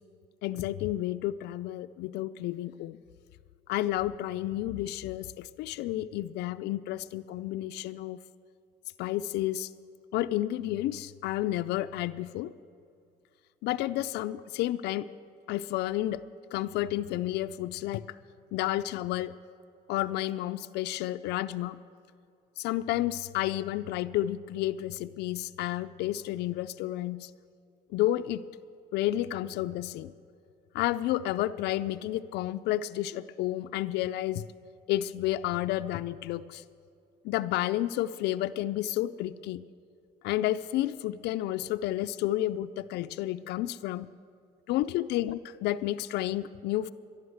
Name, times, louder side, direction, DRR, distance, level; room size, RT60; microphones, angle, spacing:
voice 1, 0.4-3.0 3.7-8.2 9.0-9.7 10.1-12.5 13.6-15.1 15.5-16.2 16.5-18.0 18.5-19.3 19.9-21.8 22.6-27.3 27.9-28.4 28.9-30.1 30.7-34.5 34.9-36.6 37.2-39.6 40.2-44.1 44.7-46.9, left 14 dB, 80° left, 11 dB, 0.4 m, -31 dB
12.5 x 11.0 x 7.8 m, 2.4 s
cardioid pair, 110°, 17 cm